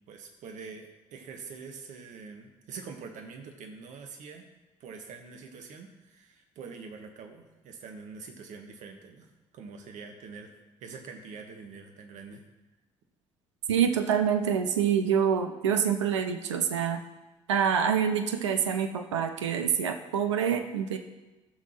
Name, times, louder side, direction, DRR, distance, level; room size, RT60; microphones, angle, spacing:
voice 1, 0.1-4.5 4.8-9.3 9.5-10.5 10.8-12.4, right 5 dB, 55° right, 4 dB, 1.3 m, -45 dB
voice 2, 13.7-17.0 17.5-21.0, right 8 dB, 75° right, 6 dB, 0.6 m, -26 dB
14.0 x 6.2 x 3.0 m, 1.1 s
figure-of-eight pair, 50°, 15 cm